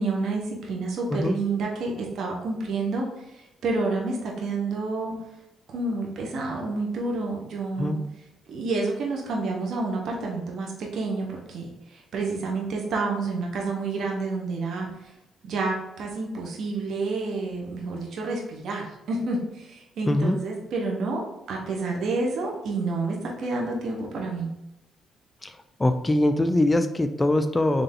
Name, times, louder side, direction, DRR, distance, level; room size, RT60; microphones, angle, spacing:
voice 1, 0.0-5.1 5.7-8.0 8.5-14.9 15.4-24.5, right 3 dB, 65° right, 0 dB, 0.9 m, -29 dB
voice 2, 20.0-20.4 25.4-27.8, left 1 dB, 15° left, 8 dB, 0.4 m, -23 dB
3.8 x 3.3 x 3.7 m, 0.93 s
cardioid pair, 90°, 0 cm